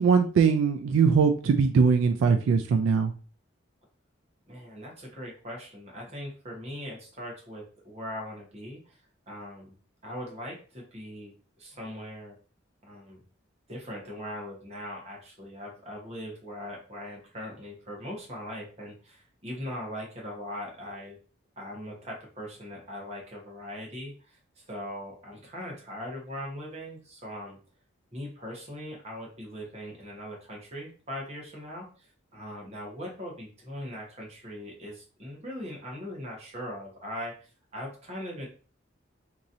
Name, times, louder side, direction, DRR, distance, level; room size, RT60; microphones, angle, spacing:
voice 1, 0.0-3.1, right 5 dB, 80° right, 6 dB, 0.3 m, -21 dB
voice 2, 4.5-9.0 9.3-9.7 10.0-12.4 12.8-13.2 13.7-21.2 21.6-27.6 28.1-38.5, equal, 35° right, -2 dB, 1.0 m, -40 dB
3.0 x 2.6 x 2.5 m, 0.38 s
head